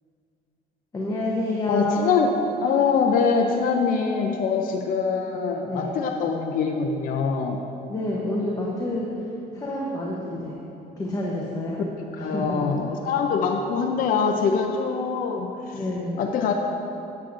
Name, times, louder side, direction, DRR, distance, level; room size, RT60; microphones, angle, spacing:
voice 1, 0.9-2.2 5.7-5.9 7.9-9.2 9.5-10.5 11.0-11.8 12.2-12.7 15.7-16.2, left 1 dB, 20° left, -4 dB, 0.8 m, -28 dB
voice 2, 1.7-7.6 12.2-15.8 16.2-16.5, left 5 dB, 55° left, 3 dB, 0.5 m, -24 dB
8.4 x 7.5 x 2.5 m, 2.9 s
cardioid pair, 110°, 17 cm